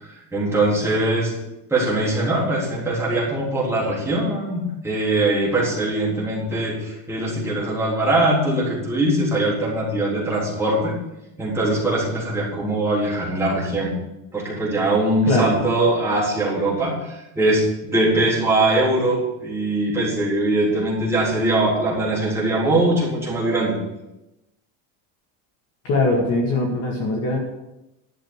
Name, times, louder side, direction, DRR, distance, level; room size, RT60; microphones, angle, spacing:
voice 1, 0.3-1.3 1.7-10.9 11.4-13.9 14.3-23.8, right 2 dB, 5° right, -7 dB, 3.7 m, -21 dB
voice 2, 25.8-27.4, left 2 dB, 35° left, -1 dB, 2.0 m, -21 dB
12.0 x 6.8 x 7.3 m, 0.94 s
cardioid pair, 175°, 42 cm